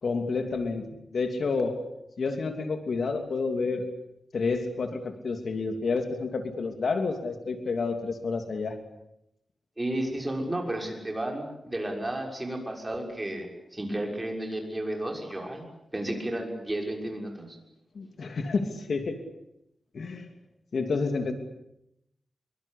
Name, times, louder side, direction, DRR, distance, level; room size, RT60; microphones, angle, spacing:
voice 1, 0.0-1.9 2.2-3.9 4.3-8.8 17.9-19.2 19.9-20.3 20.7-21.3, left 4 dB, 65° left, 6 dB, 2.9 m, -29 dB
voice 2, 9.8-15.6 15.9-17.6, right 1 dB, 15° right, 2 dB, 6.4 m, -32 dB
26.0 x 24.0 x 8.6 m, 0.81 s
wide cardioid pair, 140°, 0 cm